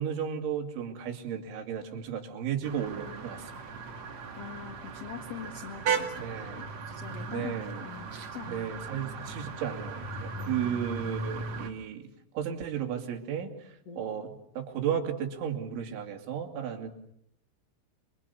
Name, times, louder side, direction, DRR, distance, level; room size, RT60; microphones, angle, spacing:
voice 1, 0.0-3.6 6.1-6.7 7.3-7.8 8.5-12.0 12.3-16.9, right 8 dB, 65° right, 3 dB, 4.9 m, -34 dB
sound 1, 2.6-11.7, right 5 dB, 45° right, 2.4 m, -37 dB
voice 2, 4.3-6.1 6.9-7.5 7.8-9.0 10.4-10.7 13.9-14.0, left 7 dB, 80° left, 4 dB, 1.4 m, -43 dB
29.5 x 24.0 x 7.0 m, 0.75 s
omnidirectional pair, 6.0 m